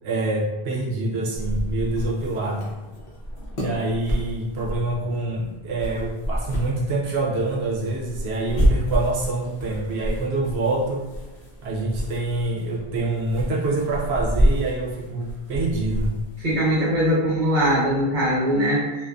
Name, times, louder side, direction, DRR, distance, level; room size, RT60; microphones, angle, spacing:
voice 1, 0.0-2.7 3.5-11.0 11.6-16.1, right 2 dB, 75° right, -2 dB, 0.9 m, -26 dB
sound 1, 1.3-16.6, equal, 45° left, 0.7 m, -29 dB
voice 2, 16.4-19.1, equal, 50° right, -5 dB, 0.9 m, -21 dB
2.4 x 2.4 x 2.2 m, 1.2 s
omnidirectional pair, 1.1 m